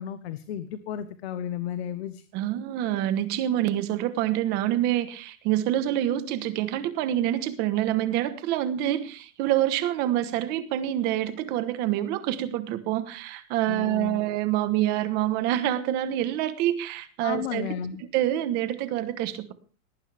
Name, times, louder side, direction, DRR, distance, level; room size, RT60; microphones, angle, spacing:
voice 1, 0.0-2.2 13.7-14.2 17.2-18.0, left 9 dB, 45° left, 12 dB, 1.2 m, -33 dB
voice 2, 2.3-17.8 18.0-19.5, right 12 dB, 25° right, 12 dB, 1.2 m, -26 dB
19.0 x 18.5 x 3.5 m, 0.37 s
supercardioid pair, 180°, 43 cm